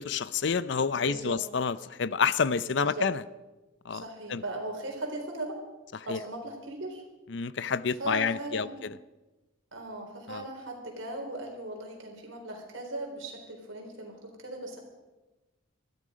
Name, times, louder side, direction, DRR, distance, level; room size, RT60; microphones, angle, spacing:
voice 1, 0.0-3.2 3.9-4.0 4.3-4.4 6.1-6.2 7.3-8.9 10.3-10.4, left 6 dB, 60° left, 17 dB, 0.5 m, -28 dB
voice 2, 1.0-1.4 2.8-3.1 3.9-5.6 6.1-7.0 8.0-8.8 9.7-14.8, right 2 dB, 75° right, 1 dB, 4.2 m, -38 dB
20.0 x 13.5 x 5.1 m, 1.1 s
head